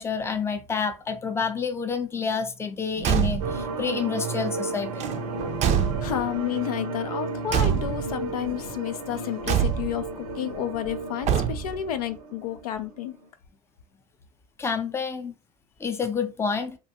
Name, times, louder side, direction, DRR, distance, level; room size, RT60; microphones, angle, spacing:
voice 1, 0.0-5.1 14.6-15.3 15.8-16.8, left 6 dB, 15° left, 0.5 m, -28 dB
Car / Truck / Slam, 3.0-3.7 5.0-6.4 7.5-8.3 9.4-10.1 11.2-11.9, right 9 dB, 40° right, 0.4 m, -25 dB
sound 1, 3.4-13.3, right 3 dB, 85° right, 0.6 m, -34 dB
voice 2, 6.0-13.2, left 11 dB, 85° left, 0.4 m, -31 dB
2.6 x 2.2 x 2.8 m
hypercardioid pair, 90°, 19 cm